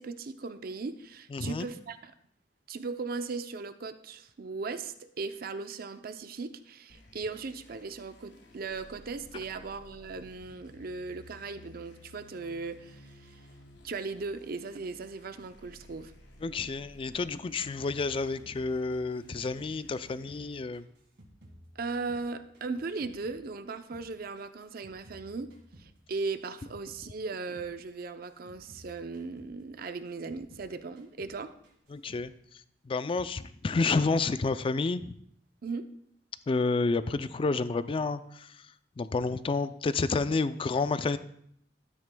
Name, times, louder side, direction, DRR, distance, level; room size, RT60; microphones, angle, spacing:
voice 1, 0.0-2.1 2.7-13.4 13.8-16.1 21.8-25.5 25.8-31.5 35.6-35.9, right 4 dB, 55° right, 10 dB, 0.5 m, -38 dB
voice 2, 1.3-1.7 16.4-20.9 31.9-35.1 36.5-41.2, left 3 dB, 30° left, 13 dB, 0.3 m, -30 dB
sound 1, 6.9-20.6, left 1 dB, 75° left, 1.7 m, -54 dB
sound 2, 17.8-20.5 20.7-23.4 23.7-27.1 27.3-27.7 28.0-30.7 31.0-31.4 31.6-32.3, equal, 75° right, 1.9 m, -56 dB
12.0 x 9.4 x 2.2 m, 0.69 s
head